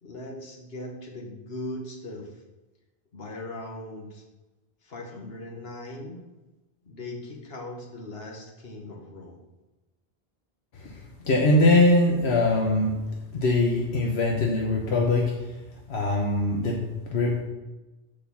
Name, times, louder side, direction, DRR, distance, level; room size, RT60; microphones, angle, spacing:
voice 1, 0.0-2.4 3.1-4.2 4.8-6.2 6.8-9.4, left 1 dB, 70° left, 0 dB, 1.7 m, -39 dB
voice 2, 10.7-13.0 13.3-15.6 15.9-17.4, left 2 dB, 85° left, 0 dB, 1.3 m, -22 dB
6.5 x 5.5 x 7.0 m, 1.1 s
omnidirectional pair, 1.1 m